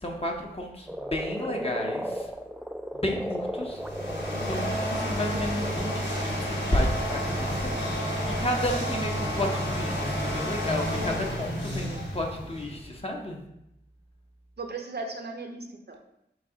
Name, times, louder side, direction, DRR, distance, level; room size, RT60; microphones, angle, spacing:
voice 1, 0.0-2.2 3.0-3.8 4.4-13.4, left 1 dB, 30° left, 0 dB, 0.8 m, -32 dB
Frog, 0.9-6.0, equal, 5° right, 0.3 m, -35 dB
sound 1, 3.6-12.8, equal, 80° left, 1.1 m, -30 dB
voice 2, 14.6-16.0, right 3 dB, 60° right, 3 dB, 0.6 m, -37 dB
4.0 x 2.6 x 4.8 m, 0.82 s
wide cardioid pair, 50°, 19 cm